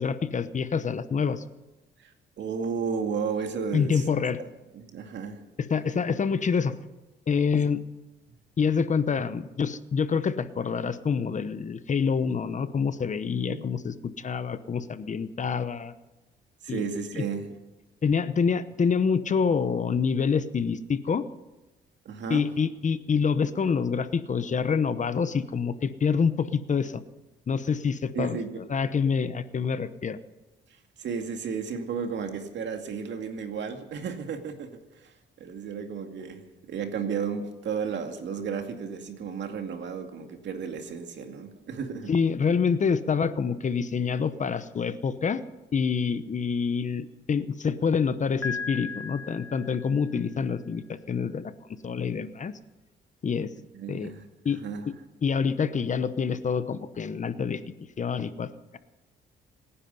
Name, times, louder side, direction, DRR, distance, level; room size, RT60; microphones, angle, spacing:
voice 1, 0.0-1.4 3.7-4.4 5.7-6.8 7.3-7.8 8.6-15.9 16.7-16.8 17.1-17.2 18.0-21.2 22.3-27.0 27.5-28.4 28.7-30.2 42.1-45.4 45.7-51.5 51.8-52.5 53.2-53.5 53.9-54.1 54.4-54.6 55.2-58.8, left 6 dB, 40° left, 0.9 m, -27 dB
voice 2, 2.4-4.2 4.7-5.4 13.4-13.6 16.6-17.5 22.0-22.5 28.1-28.6 31.0-42.1 53.7-54.2 54.6-54.9, right 6 dB, 65° right, 2.3 m, -33 dB
Piano, 48.4-50.3, left 5 dB, 10° left, 0.7 m, -37 dB
26.0 x 10.0 x 5.5 m
cardioid pair, 90°, 20 cm